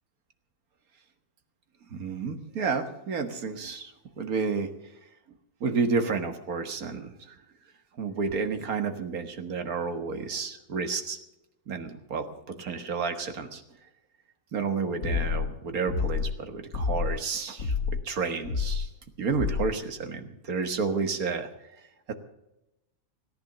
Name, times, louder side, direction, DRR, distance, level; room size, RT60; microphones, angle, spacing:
voice 1, 1.9-4.7 5.6-7.4 8.0-11.2 11.7-12.3 12.6-13.6 14.5-17.7 18.0-18.9 19.2-21.5 22.1-22.2, right 5 dB, 80° right, 7 dB, 1.9 m, -30 dB
sound 1, 15.0-15.5 15.9-16.4 16.7-17.2 17.6-18.0 18.5-18.9 19.3-19.7, left 5 dB, 80° left, 1.6 m, -28 dB
17.5 x 10.5 x 6.7 m, 0.91 s
omnidirectional pair, 1.5 m